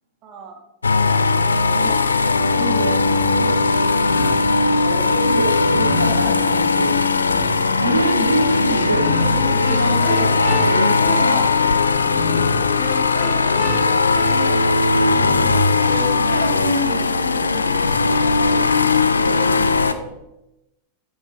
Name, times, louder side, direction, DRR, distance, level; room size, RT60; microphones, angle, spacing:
voice 1, 0.2-0.6 12.5-12.9 13.1-14.8 15.8-15.9, right 4 dB, 35° right, 1 dB, 2.0 m, -40 dB
sound 1, 0.8-19.9, left 4 dB, 75° left, 0.5 m, -18 dB
voice 2, 1.6-2.0 2.5-4.3 4.8-7.0 7.7-11.5 16.3-18.6 19.1-20.1, right 1 dB, 85° right, -3 dB, 1.3 m, -26 dB
sound 2, 4.1-4.6 5.7-6.7 7.3-7.8 8.8-16.4, left 1 dB, 30° left, 1.9 m, -28 dB
13.5 x 6.9 x 2.8 m, 0.90 s
figure-of-eight pair, 90°, 0 cm